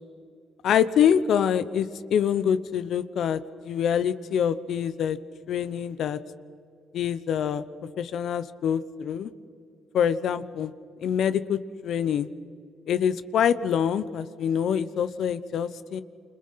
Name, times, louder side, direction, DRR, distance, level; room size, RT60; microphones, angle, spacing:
voice 1, 0.6-5.2 5.5-6.2 6.9-7.6 8.0-9.3 9.9-10.7 11.0-12.3 12.9-16.0, left 8 dB, 70° left, 14 dB, 1.0 m, -25 dB
28.0 x 26.0 x 5.8 m, 2.3 s
cardioid pair, 90°, 0 cm